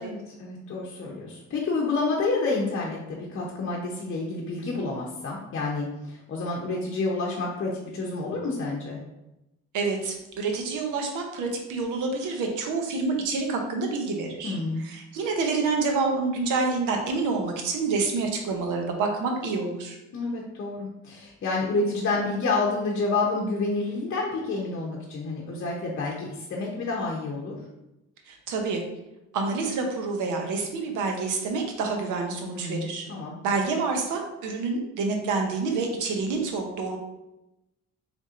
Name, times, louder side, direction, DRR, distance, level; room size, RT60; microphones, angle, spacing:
voice 1, 0.0-9.0 14.4-14.8 20.1-27.6 32.5-33.4, left 3 dB, 45° left, -3 dB, 0.7 m, -29 dB
voice 2, 9.7-14.6 14.8-20.0 28.3-28.8 29.3-33.0 33.4-37.0, right 4 dB, 90° right, 3 dB, 0.8 m, -28 dB
4.1 x 3.5 x 2.5 m, 0.93 s
cardioid pair, 90°, 30 cm